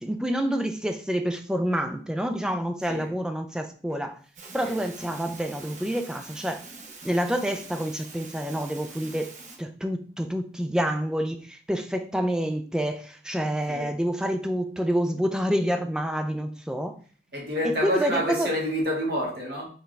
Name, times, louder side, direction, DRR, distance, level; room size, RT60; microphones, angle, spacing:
voice 1, 0.0-4.2 4.5-6.6 7.0-9.3 9.6-17.0 17.6-18.5, equal, 5° right, 6 dB, 0.3 m, -28 dB
sound 1, 4.3-9.6, right 3 dB, 45° right, 0.8 m, -44 dB
voice 2, 17.3-19.7, equal, 60° right, -3 dB, 1.8 m, -28 dB
4.7 x 3.5 x 3.2 m, 0.43 s
head